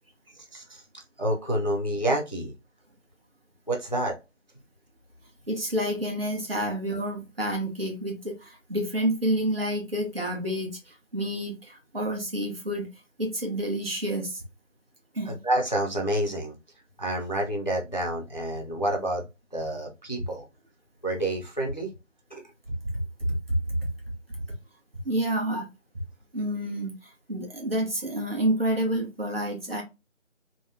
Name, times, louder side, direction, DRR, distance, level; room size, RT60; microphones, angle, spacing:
voice 1, 1.2-2.5 3.7-4.1 15.3-16.5 17.0-19.3 19.5-20.4 21.0-21.9 22.3-22.4 25.5-25.6, right 1 dB, 35° left, 0.5 m, -28 dB
voice 2, 5.5-12.9 13.2-14.4 15.1-15.3 22.8-22.9 23.2-23.8 25.0-25.7 26.3-29.8, right 1 dB, 50° right, 1.3 m, -29 dB
3.4 x 2.1 x 2.8 m
figure-of-eight pair, 165°, 38 cm